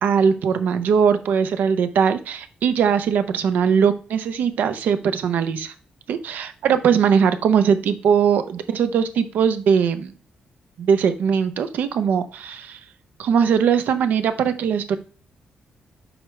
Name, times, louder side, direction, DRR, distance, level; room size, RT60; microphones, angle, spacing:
voice 1, 0.0-5.7 6.1-10.1 10.8-12.8 13.2-15.0, right 7 dB, 70° right, 10 dB, 0.7 m, -20 dB
7.9 x 5.0 x 3.2 m, 0.39 s
wide cardioid pair, 175°, 3 cm